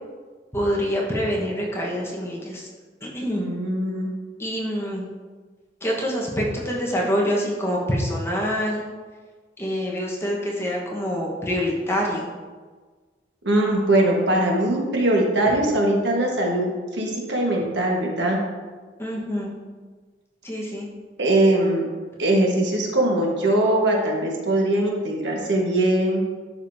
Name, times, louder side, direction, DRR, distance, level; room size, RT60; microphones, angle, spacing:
voice 1, 0.5-2.7 3.1-3.5 4.4-5.0 5.8-8.8 9.6-12.3 19.0-19.5 20.4-20.9, equal, 15° left, -3 dB, 1.1 m, -26 dB
voice 2, 3.3-4.1 13.4-16.7 16.9-18.4 21.2-21.9 22.2-26.2, right 1 dB, 85° right, 0 dB, 1.3 m, -21 dB
11.5 x 5.1 x 2.7 m, 1.4 s
head